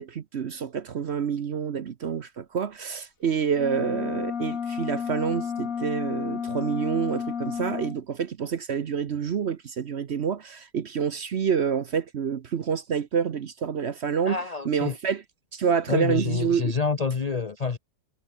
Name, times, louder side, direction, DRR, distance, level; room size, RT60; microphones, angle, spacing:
voice 1, 0.0-14.4 14.7-15.2 15.5-16.7, right 7 dB, 50° right, 0.8 m, -28 dB
sound 1, 3.5-8.0, left 7 dB, 50° left, 1.8 m, -31 dB
voice 2, 14.2-15.0 15.9-17.8, left 5 dB, 75° left, 0.3 m, -27 dB
omnidirectional pair, 1.9 m